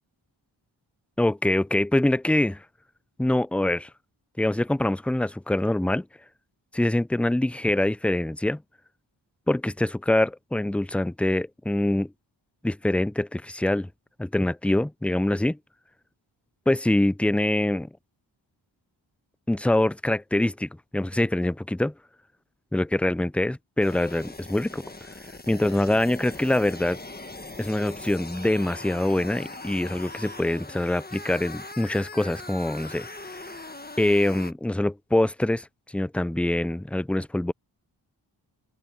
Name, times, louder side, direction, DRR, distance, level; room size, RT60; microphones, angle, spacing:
voice 1, 1.2-2.6 3.2-3.9 4.4-6.1 6.7-8.6 9.5-12.1 12.6-13.9 14.2-15.6 16.7-17.9 19.5-21.9 22.7-24.8 25.5-27.0 27.6-33.5 34.0-37.5, left 1 dB, 5° left, 0.4 m, -24 dB
sound 1, 23.8-34.5, left 2 dB, 20° left, 1.4 m, -41 dB
open air
cardioid pair, 45°, 46 cm